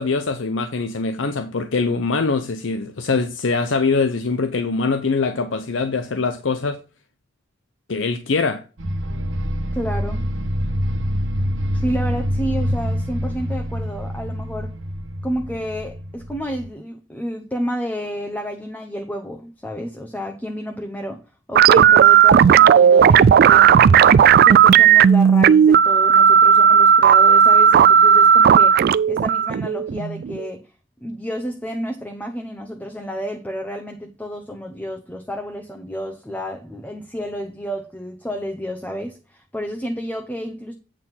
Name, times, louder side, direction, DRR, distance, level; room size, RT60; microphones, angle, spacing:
voice 1, 0.0-6.8 7.9-8.6, left 4 dB, 75° left, 0.7 m, -23 dB
sound 1, 8.8-16.7, equal, 75° right, 1.3 m, -26 dB
voice 2, 9.7-10.2 11.7-14.7 15.2-21.2 21.5-30.7 31.0-40.7, equal, 10° left, 0.8 m, -30 dB
sound 2, 21.6-30.5, right 8 dB, 50° right, 0.3 m, -12 dB
8.9 x 4.3 x 5.6 m
head